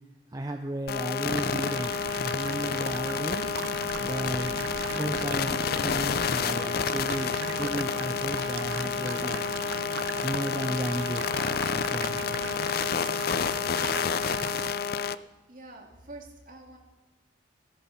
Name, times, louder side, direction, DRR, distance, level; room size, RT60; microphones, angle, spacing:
voice 1, 0.3-3.6 4.0-9.4 10.2-11.2 11.7-12.2, right 1 dB, 20° right, 5 dB, 0.6 m, -34 dB
sound 1, 0.9-15.1, left 6 dB, 50° left, 0.4 m, -29 dB
sound 2, 1.3-14.7, right 5 dB, 85° right, 0.6 m, -38 dB
voice 2, 15.5-16.8, right 2 dB, 45° right, 2 dB, 2.4 m, -46 dB
16.5 x 14.0 x 5.8 m, 1.2 s
head